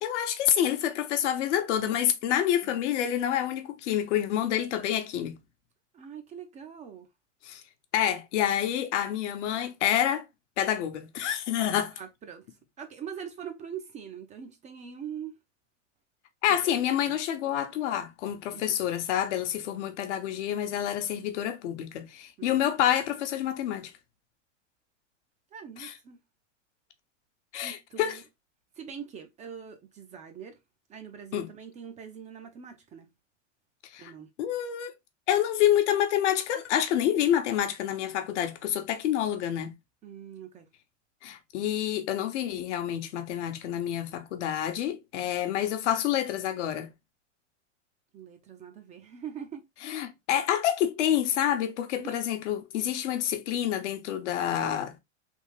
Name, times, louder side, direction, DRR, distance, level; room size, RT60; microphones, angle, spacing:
voice 1, 0.0-5.4 7.4-7.6 7.9-10.2 10.6-11.9 16.4-23.9 25.8-25.9 27.5-28.2 31.3-31.5 33.9-34.1 34.4-34.9 35.3-39.7 41.2-46.9 49.8-55.0, left 10 dB, 70° left, 0.9 m, -28 dB
voice 2, 5.9-7.1 11.9-15.3 16.5-17.2 18.5-18.8 22.4-22.6 25.5-26.2 27.6-28.2 28.7-30.6 30.9-33.1 34.0-34.3 40.0-40.7 48.1-50.0 51.9-52.2, right 8 dB, 20° right, 0.4 m, -43 dB
3.5 x 2.4 x 3.1 m
hypercardioid pair, 125°, 37 cm